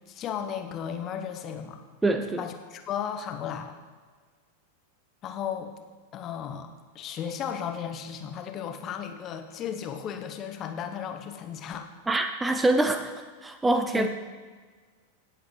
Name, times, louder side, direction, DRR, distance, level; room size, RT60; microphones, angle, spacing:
voice 1, 0.1-1.8 2.4-3.7 5.2-5.7 6.1-6.7 6.9-11.9 13.9-14.1, left 8 dB, 30° left, 6 dB, 1.0 m, -35 dB
voice 2, 2.0-2.4 12.1-13.1 13.4-14.1, right 2 dB, 10° right, 8 dB, 0.5 m, -24 dB
17.5 x 8.1 x 3.2 m, 1.5 s
figure-of-eight pair, 90°, 0 cm